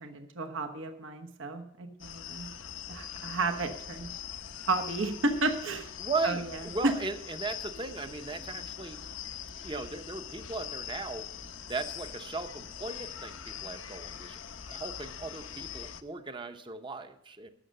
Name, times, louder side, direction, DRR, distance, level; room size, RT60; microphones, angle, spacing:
voice 1, 0.0-2.5 2.9-4.1 4.7-5.9 6.2-6.4 6.8-6.9, right 2 dB, 70° right, 6 dB, 1.1 m, -32 dB
sound 1, 2.0-16.0, left 8 dB, 70° left, 0.8 m, -42 dB
voice 2, 6.0-9.0 9.6-11.3 11.7-14.4 14.7-17.5, right 3 dB, 25° right, 8 dB, 0.8 m, -37 dB
14.5 x 6.4 x 6.5 m, 0.82 s
head